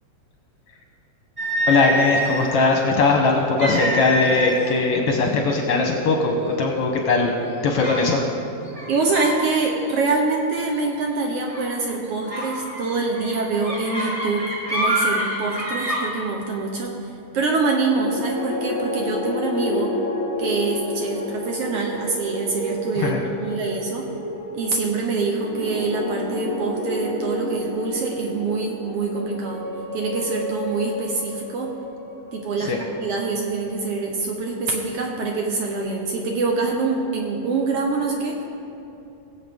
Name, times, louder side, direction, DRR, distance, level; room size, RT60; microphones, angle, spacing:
sound 1, 1.4-2.6 3.6-4.7 5.0-5.3 6.0-6.1 6.6-7.0 7.8-8.1 8.7-9.4 9.7-10.0 11.5-11.7 12.3-16.0, right 1 dB, 15° right, 2.1 m, -26 dB
voice 1, 1.7-7.3 7.6-8.2 22.9-23.2 32.6-32.8, left 3 dB, 65° left, 1 dB, 1.5 m, -20 dB
voice 2, 8.9-16.9 17.3-19.9 20.4-24.1 24.5-29.6 29.9-31.7 32.3-38.4, right 3 dB, 65° right, 0 dB, 1.6 m, -25 dB
sound 2, 17.8-34.1, left 1 dB, 45° left, 1.1 m, -30 dB
19.5 x 7.8 x 3.6 m, 2.7 s
omnidirectional pair, 3.3 m